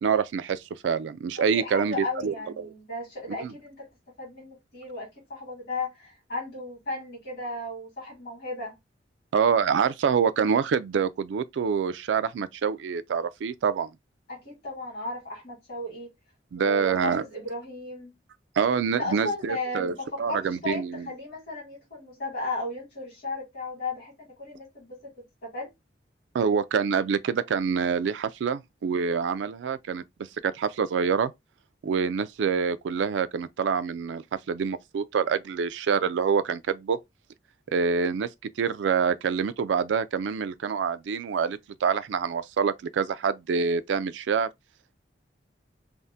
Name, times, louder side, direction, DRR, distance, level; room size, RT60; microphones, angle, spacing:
voice 1, 0.0-2.7 3.4-3.5 9.3-13.9 16.5-17.2 18.6-21.1 26.3-30.0 30.4-31.3 31.8-37.0 37.7-38.3 38.6-44.5, right 6 dB, 90° right, 0.3 m, -26 dB
voice 2, 1.4-3.9 4.2-8.7 14.3-16.1 16.5-18.1 19.0-25.7 37.7-37.8, left 2 dB, 60° left, 1.7 m, -35 dB
3.4 x 2.1 x 2.7 m
head